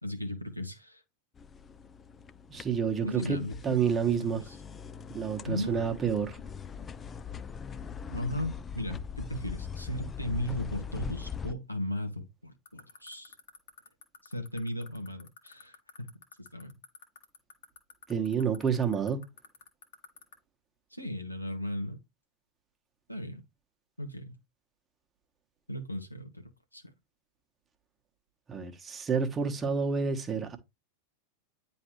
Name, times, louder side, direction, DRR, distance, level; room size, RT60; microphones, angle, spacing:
voice 1, 0.0-1.0 3.0-3.8 4.1-4.6 5.5-5.9 8.1-13.3 14.2-16.1 16.4-16.7 20.9-22.0 23.1-23.4 24.0-24.4 25.7-26.8, left 1 dB, 90° left, 1.0 m, -36 dB
sound 1, 1.4-11.5, left 7 dB, 20° left, 0.4 m, -41 dB
voice 2, 2.5-4.4 5.1-6.4 18.1-19.2 28.5-30.6, right 6 dB, 20° right, 1.2 m, -29 dB
sound 2, 12.6-20.3, left 8 dB, 60° left, 1.5 m, -48 dB
9.7 x 3.3 x 3.0 m
figure-of-eight pair, 90°, 0 cm